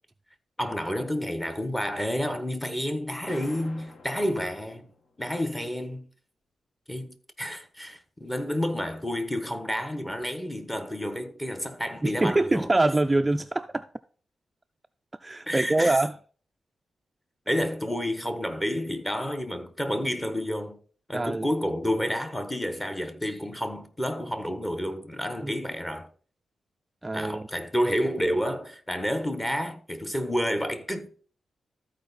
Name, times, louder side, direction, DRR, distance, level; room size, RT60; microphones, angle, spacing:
voice 1, 0.6-4.9 5.2-6.1 6.9-12.7 15.5-16.0 17.5-20.8 21.1-26.1 27.1-31.1, equal, 15° left, 1.2 m, -30 dB
sound 1, 3.3-5.3, left 3 dB, 60° left, 1.4 m, -47 dB
voice 2, 12.0-13.9 15.2-16.2 21.1-21.5 25.4-25.5 27.0-27.5, right 2 dB, 20° right, 0.3 m, -24 dB
13.5 x 4.6 x 4.1 m
cardioid pair, 90°, 0 cm